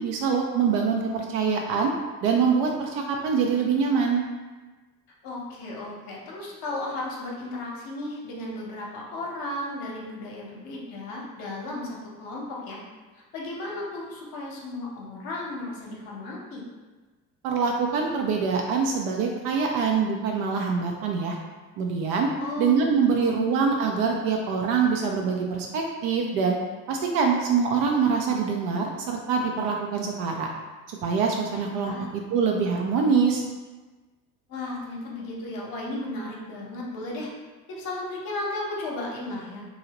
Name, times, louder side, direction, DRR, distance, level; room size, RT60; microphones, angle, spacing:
voice 1, 0.0-1.9 2.2-4.3 17.4-21.4 21.8-22.3 22.6-26.6 26.9-30.5 30.9-31.9 32.3-33.4, right 5 dB, 45° right, 1 dB, 0.4 m, -24 dB
voice 2, 5.2-12.8 13.1-16.6 22.4-23.5 31.5-32.1 34.5-37.3 37.7-39.6, left 2 dB, 45° left, -2 dB, 0.9 m, -35 dB
2.7 x 2.7 x 2.8 m, 1.3 s
figure-of-eight pair, 65°, 49 cm